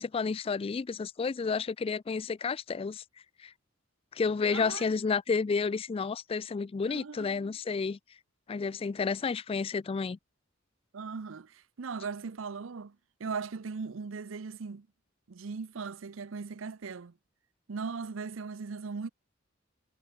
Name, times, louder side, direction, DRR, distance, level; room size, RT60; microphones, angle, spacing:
voice 1, 0.0-3.0 3.4-3.5 4.1-8.0 8.5-10.2, left 5 dB, 30° left, 0.3 m, -31 dB
voice 2, 4.5-4.8 6.9-7.5 10.9-14.9 15.3-17.1 17.7-19.1, right 5 dB, 90° right, 0.6 m, -39 dB
head